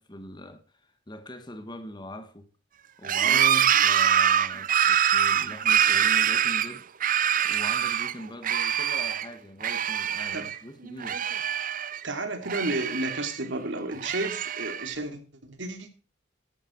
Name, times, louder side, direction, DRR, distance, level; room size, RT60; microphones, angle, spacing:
voice 1, 0.0-2.5 3.0-3.5 3.8-6.9 7.4-11.2, left 1 dB, 25° left, 1.5 m, -42 dB
sound 1, 3.0-8.1 8.4-9.3 9.6-10.6 10.8-12.0 12.4-13.4 13.9-14.9, right 9 dB, 45° right, 0.6 m, -24 dB
voice 2, 3.2-3.7 10.3-10.5 12.0-15.2 15.5-15.9, right 2 dB, 70° right, 2.9 m, -32 dB
15.5 x 11.5 x 4.5 m
head